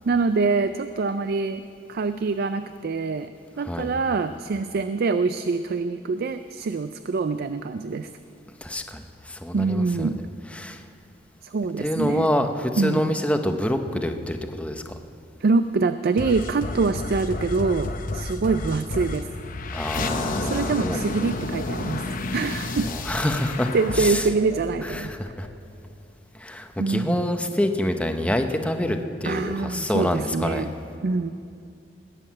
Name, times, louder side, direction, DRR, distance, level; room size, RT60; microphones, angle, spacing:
voice 1, 0.0-1.6 1.9-3.3 3.6-8.1 9.5-10.2 11.5-12.3 12.8-13.2 15.4-19.3 20.4-22.0 22.3-22.9 23.7-25.1 26.8-27.3 29.3-30.7 31.0-31.3, right 4 dB, 55° right, 11 dB, 0.4 m, -25 dB
voice 2, 3.6-3.9 8.6-10.1 10.5-10.8 11.8-15.0 19.7-21.0 22.8-23.7 24.0-24.2 24.9-25.5 26.4-30.7, left 1 dB, 5° left, 6 dB, 0.8 m, -26 dB
sound 1, 16.2-25.5, left 2 dB, 45° left, 0.8 m, -31 dB
20.0 x 7.7 x 8.6 m, 2.4 s
head